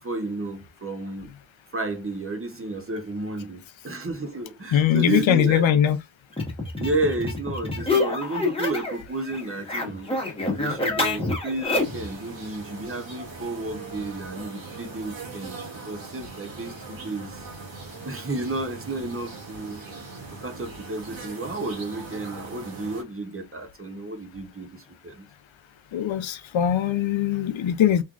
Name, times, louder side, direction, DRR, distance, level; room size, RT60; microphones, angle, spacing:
voice 1, 0.0-1.3 1.7-5.6 6.8-10.1 10.6-15.6 15.9-17.5 18.0-19.8 20.4-25.3, right 2 dB, 30° right, 0.8 m, -32 dB
voice 2, 4.7-6.0 25.9-28.0, left 9 dB, 85° left, 0.6 m, -21 dB
sound 1, 6.3-9.0 9.3-12.1, left 3 dB, 10° left, 1.1 m, -27 dB
sound 2, 11.7-23.0, right 3 dB, 90° right, 1.7 m, -40 dB
3.7 x 3.2 x 2.4 m
wide cardioid pair, 140°, 45 cm